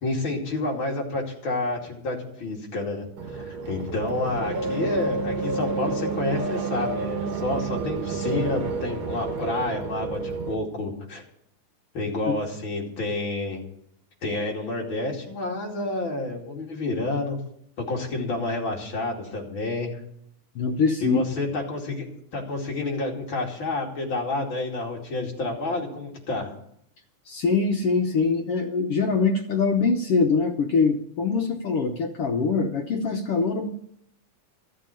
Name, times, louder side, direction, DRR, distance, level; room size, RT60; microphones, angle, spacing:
voice 1, 0.0-3.0 3.3-11.2 11.9-13.6 14.2-17.4 17.8-19.9 21.0-22.1 22.3-26.5, left 2 dB, 40° left, -1 dB, 3.1 m, -29 dB
sound 1, 3.2-10.6, right 4 dB, 65° right, 2.2 m, -30 dB
voice 2, 20.5-21.2 27.3-33.7, left 4 dB, 70° left, 3 dB, 1.4 m, -23 dB
14.0 x 7.6 x 8.8 m, 0.72 s
omnidirectional pair, 3.6 m